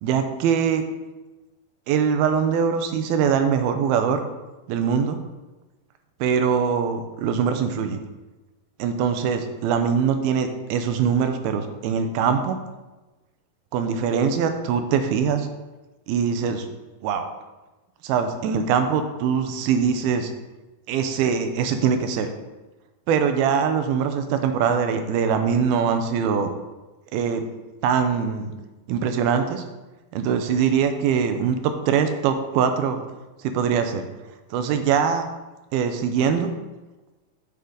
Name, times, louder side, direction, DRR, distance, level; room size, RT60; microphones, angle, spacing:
voice 1, 0.0-0.8 1.9-4.2 4.7-5.2 6.2-8.0 8.8-12.6 13.7-15.5 16.1-16.7 17.0-17.3 18.0-20.3 20.9-22.3 23.1-26.5 27.1-27.4 27.8-28.5 28.9-29.6 30.1-33.0 33.4-34.1 34.5-35.3 35.7-36.5, right 7 dB, 85° right, 7 dB, 2.6 m, -22 dB
8.3 x 6.6 x 3.9 m, 1.1 s
omnidirectional pair, 4.5 m